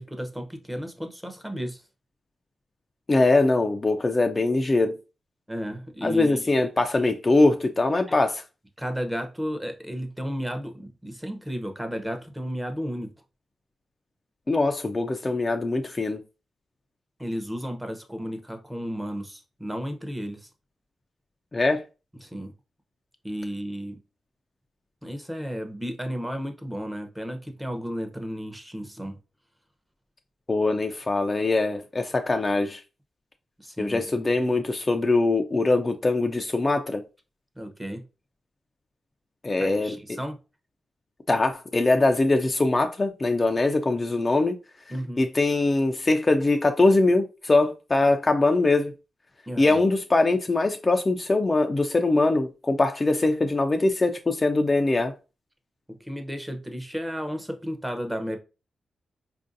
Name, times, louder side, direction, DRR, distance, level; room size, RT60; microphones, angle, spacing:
voice 1, 0.0-1.8 5.5-6.6 8.1-8.2 8.8-13.1 17.2-20.5 22.2-22.5 23.2-24.0 25.0-29.2 33.6-34.0 37.6-38.0 39.6-40.4 44.9-45.3 49.5-49.8 55.9-58.4, equal, 10° right, 0.7 m, -33 dB
voice 2, 3.1-4.9 6.0-8.4 14.5-16.2 21.5-21.8 30.5-32.8 33.8-37.0 39.4-40.0 41.3-44.5 45.2-48.9 49.6-55.1, left 2 dB, 30° left, 0.3 m, -22 dB
4.5 x 2.5 x 2.5 m
cardioid pair, 90°, 0 cm